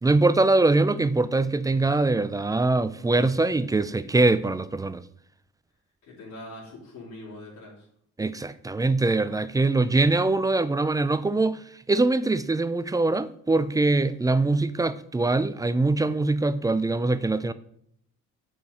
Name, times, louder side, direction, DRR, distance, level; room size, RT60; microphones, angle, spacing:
voice 1, 0.0-5.0 8.2-17.5, right 2 dB, 10° right, 0.4 m, -23 dB
voice 2, 6.0-7.9, left 1 dB, 90° left, 2.9 m, -43 dB
6.9 x 5.0 x 5.3 m
cardioid pair, 90°, 30 cm